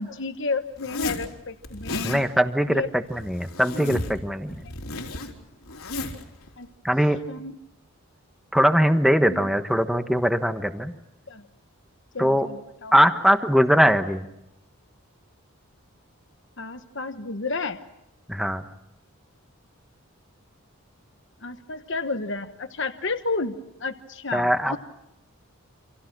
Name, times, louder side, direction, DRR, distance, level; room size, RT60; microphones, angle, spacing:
voice 1, 0.0-2.2 2.7-2.9 4.6-4.9 6.6-6.7 7.3-7.6 9.2-9.5 11.3-11.4 12.1-12.9 16.6-17.8 21.4-24.8, left 3 dB, 55° left, 8 dB, 1.2 m, -31 dB
Zipper (clothing), 0.8-1.3 1.6-2.2 3.1-4.2 4.5-6.2, left 2 dB, 80° left, 3.6 m, -33 dB
voice 2, 2.0-4.6 6.8-7.2 8.5-10.9 12.2-12.5 12.9-14.3 18.3-18.6 24.3-24.8, equal, ahead, 8 dB, 1.2 m, -21 dB
29.0 x 27.0 x 6.1 m, 0.84 s
head